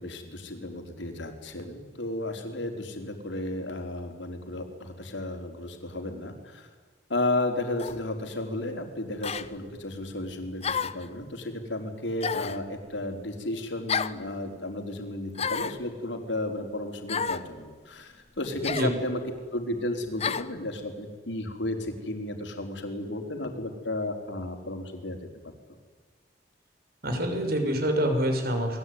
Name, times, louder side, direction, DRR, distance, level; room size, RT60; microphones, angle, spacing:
voice 1, 0.0-6.7 7.1-19.2 19.5-25.2 25.7-25.8, left 1 dB, 80° left, 5 dB, 4.5 m, -33 dB
sound 1, 7.8-8.0 9.2-9.5 10.6-11.1 12.2-12.6 13.9-14.2 15.3-15.8 17.1-17.5 18.6-18.9 20.2-20.5, left 6 dB, 35° left, 1.0 m, -30 dB
voice 2, 27.0-28.8, equal, 55° right, 5 dB, 6.0 m, -26 dB
28.5 x 21.5 x 9.7 m, 1.5 s
head